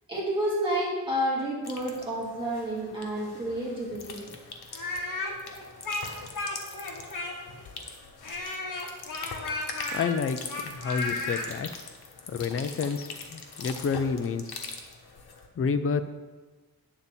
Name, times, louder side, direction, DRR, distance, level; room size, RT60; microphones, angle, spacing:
voice 1, 0.1-4.2, right 1 dB, 15° right, -7 dB, 2.4 m, -30 dB
sound 1, 1.6-15.5, left 4 dB, 85° left, 1.1 m, -43 dB
Speech, 4.7-7.6 8.2-11.5, left 2 dB, 55° left, 1.4 m, -33 dB
voice 2, 9.9-11.7 12.3-14.4 15.6-16.1, left 5 dB, 40° left, 10 dB, 0.4 m, -29 dB
8.9 x 4.0 x 7.1 m, 1.3 s
wide cardioid pair, 160°, 38 cm